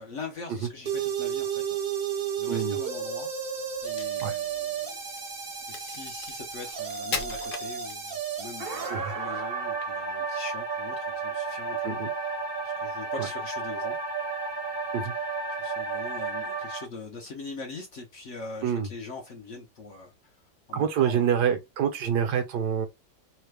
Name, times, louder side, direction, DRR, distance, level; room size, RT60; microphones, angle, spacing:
voice 1, 0.0-1.8 2.4-3.3 3.8-5.0 5.7-12.3 12.6-14.0 15.6-21.3, left 3 dB, 60° left, 0.8 m, -42 dB
sound 1, 0.9-16.9, right 5 dB, 45° right, 0.8 m, -32 dB
Crack, 3.8-8.4, left 4 dB, 90° left, 0.4 m, -39 dB
voice 2, 20.7-22.9, right 8 dB, 75° right, 1.3 m, -26 dB
3.2 x 2.2 x 3.2 m
omnidirectional pair, 1.8 m